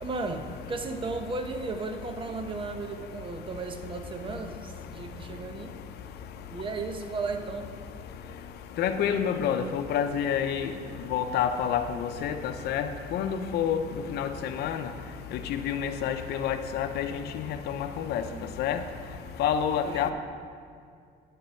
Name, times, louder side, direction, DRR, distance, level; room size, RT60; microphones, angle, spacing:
voice 1, 0.0-5.7 6.5-7.7 19.8-20.1, right 3 dB, 30° right, 6 dB, 0.8 m, -35 dB
voice 2, 8.8-10.7 11.1-13.8 14.1-14.8 15.6-17.1 17.5-18.2 18.6-18.8 19.4-20.1, left 8 dB, 75° left, 8 dB, 0.7 m, -28 dB
9.4 x 5.6 x 5.7 m, 2.3 s
cardioid pair, 110°, 17 cm